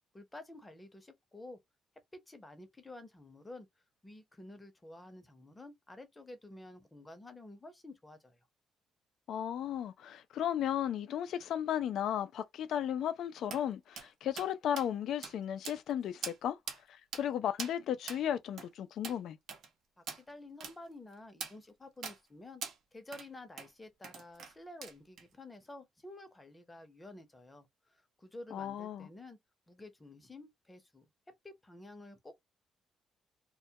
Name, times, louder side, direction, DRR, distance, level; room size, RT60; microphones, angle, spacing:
voice 1, 0.1-1.6 2.1-3.7 4.0-8.4 20.0-22.6 22.9-29.4 29.7-31.1 31.4-32.4, left 2 dB, 20° left, 0.7 m, -51 dB
voice 2, 9.3-16.6 16.9-19.4 28.5-29.1, left 10 dB, 75° left, 0.4 m, -35 dB
sound 1, 13.5-13.6 14.0-14.1 14.4-14.5 14.8-14.9 15.2-15.3 15.6-15.9 16.2-16.4 16.7-16.8 17.1-17.2 17.6-17.7 18.1-18.2 18.6-18.7 19.0-19.2 19.5-19.7 20.1-20.2 20.6-20.7 21.4-21.5 22.0-22.2 22.6-22.8 23.1-23.3 23.6-23.7 24.0-24.5 24.8-25.2, right 6 dB, 75° right, 0.7 m, -42 dB
2.2 x 2.1 x 2.7 m
cardioid pair, 90°, 0 cm